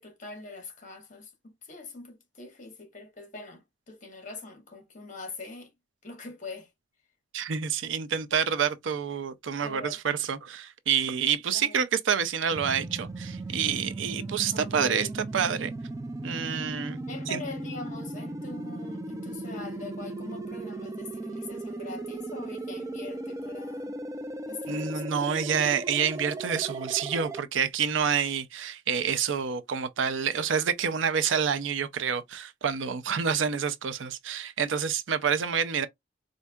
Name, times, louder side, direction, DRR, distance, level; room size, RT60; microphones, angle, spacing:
voice 1, 0.0-5.7 6.0-6.7 9.6-10.0 11.5-11.8 14.5-15.1 17.0-23.9 24.5-25.0 27.2-27.5, left 3 dB, 40° left, 1.2 m, -43 dB
voice 2, 7.3-15.1 15.3-15.7 16.2-17.0 17.3-17.4 24.7-35.9, right 7 dB, 85° right, 0.5 m, -28 dB
sound 1, 12.5-27.4, right 2 dB, 15° right, 0.3 m, -37 dB
4.4 x 2.6 x 2.3 m
head